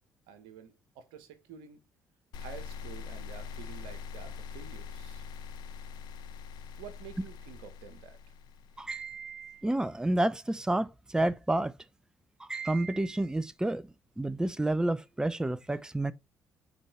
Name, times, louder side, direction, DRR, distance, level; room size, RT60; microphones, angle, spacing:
voice 1, 0.3-1.8 2.4-5.2 6.8-8.3, right 7 dB, 70° right, 1.4 m, -49 dB
sound 1, 2.3-9.5, left 6 dB, 65° left, 1.0 m, -43 dB
voice 2, 8.8-11.7 12.4-13.8 14.2-16.1, right 1 dB, 10° right, 0.6 m, -30 dB
7.5 x 4.6 x 4.6 m
hypercardioid pair, 50°, 8 cm